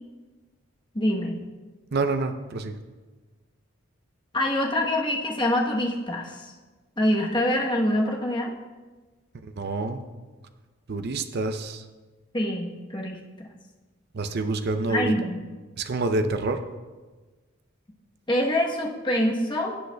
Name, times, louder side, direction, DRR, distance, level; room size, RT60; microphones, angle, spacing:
voice 1, 0.9-1.4 4.3-6.4 7.0-8.5 12.3-13.5 14.9-15.4 18.3-19.8, left 1 dB, 20° left, 0 dB, 1.0 m, -25 dB
voice 2, 1.9-2.7 9.4-10.0 10.9-11.8 14.1-15.1 15.8-16.6, right 3 dB, 50° right, 8 dB, 0.5 m, -27 dB
16.5 x 7.9 x 2.3 m, 1.3 s
head